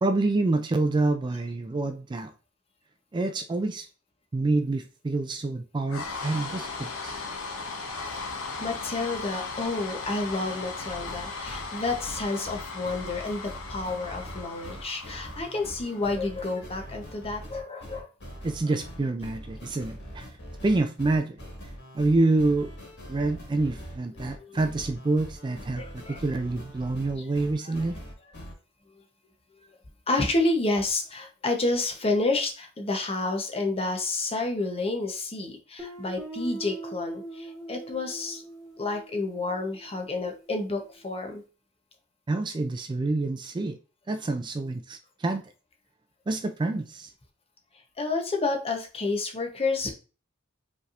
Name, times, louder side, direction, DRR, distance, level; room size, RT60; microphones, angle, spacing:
voice 1, 0.0-2.3 3.1-3.9 4.3-7.2 18.4-20.3 20.6-21.4 21.9-22.7 23.1-28.0 42.3-43.8 44.1-45.4 46.3-47.1, right 2 dB, 20° right, 0.3 m, -27 dB
sound 1, 5.9-16.2, left 4 dB, 80° left, 0.8 m, -37 dB
voice 2, 8.1-18.1 24.2-24.6 25.8-26.2 27.6-27.8 30.1-38.4 38.8-41.4 48.0-49.9, left 2 dB, 30° left, 0.8 m, -30 dB
sound 2, 10.9-28.5, equal, 55° left, 1.8 m, -43 dB
Guitar, 35.8-40.5, right 2 dB, ahead, 2.2 m, -42 dB
5.2 x 3.3 x 2.4 m
head